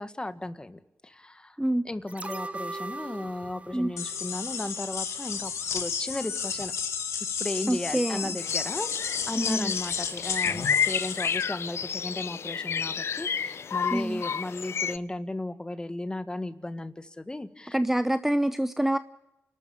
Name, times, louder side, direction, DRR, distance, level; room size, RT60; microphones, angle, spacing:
voice 1, 0.0-1.6 1.8-6.7 7.4-17.8, left 2 dB, 20° left, 1.7 m, -35 dB
sound 1, 2.1-5.2 5.6-5.7, right 2 dB, 25° right, 1.0 m, -40 dB
sound 2, 4.0-11.4, left 6 dB, 80° left, 2.4 m, -33 dB
voice 2, 7.7-8.4 9.4-9.7 13.9-14.2 17.7-19.0, right 1 dB, 5° right, 0.8 m, -26 dB
sound 3, 8.4-15.0, left 7 dB, 60° left, 0.7 m, -30 dB
29.5 x 13.0 x 8.7 m
cardioid pair, 65°, 5 cm